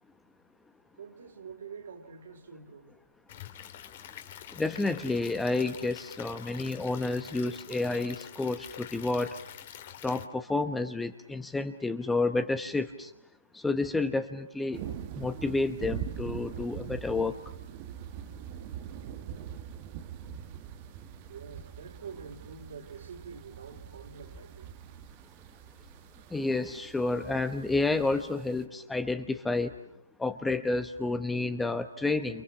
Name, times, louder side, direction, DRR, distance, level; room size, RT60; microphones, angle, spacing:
voice 1, 0.9-2.9 21.3-24.7, right 5 dB, 60° right, 3.9 m, -46 dB
Stream / Liquid, 3.3-10.3, left 11 dB, 40° left, 2.7 m, -46 dB
voice 2, 4.5-9.4 10.0-13.1 13.5-14.8 15.2-17.3 26.3-29.7 30.2-32.4, left 3 dB, 5° left, 1.1 m, -30 dB
sound 1, 14.7-28.6, right 9 dB, 30° right, 1.5 m, -43 dB
29.5 x 29.5 x 6.2 m
hypercardioid pair, 145°, 0 cm